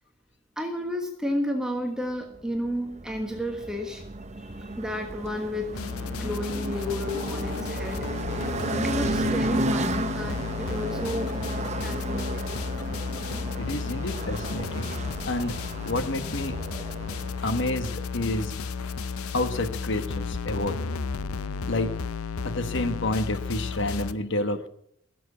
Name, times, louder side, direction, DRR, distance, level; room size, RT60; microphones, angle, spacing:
voice 1, 0.6-4.0 4.4-5.9 6.2-8.1 8.7-11.3 11.8-12.5, left 1 dB, 5° right, 3 dB, 1.3 m, -32 dB
sound 1, 2.3-19.8, right 2 dB, 30° right, 0.8 m, -34 dB
sound 2, 5.7-24.1, left 5 dB, 90° left, 0.7 m, -33 dB
voice 2, 13.6-14.9 15.2-15.5 15.8-16.6 17.4-18.5 19.3-20.8 21.6-21.9 22.4-24.7, left 2 dB, 55° left, 10 dB, 1.3 m, -29 dB
16.0 x 7.7 x 8.3 m, 0.71 s
head